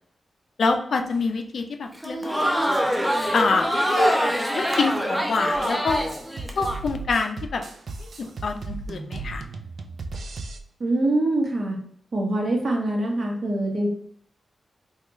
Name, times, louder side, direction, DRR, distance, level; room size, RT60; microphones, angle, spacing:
voice 1, 0.6-2.3 3.3-4.1 4.5-6.0 6.6-7.6 8.0-9.4, left 4 dB, 65° left, 5 dB, 0.4 m, -26 dB
Crowd, 1.9-6.8, equal, ahead, 0.5 m, -24 dB
sound 1, 5.5-10.6, right 3 dB, 65° right, 0.3 m, -36 dB
voice 2, 10.8-11.8 12.1-13.9, right 1 dB, 50° right, 0 dB, 0.9 m, -24 dB
3.4 x 2.3 x 3.0 m, 0.64 s
wide cardioid pair, 120°, 0 cm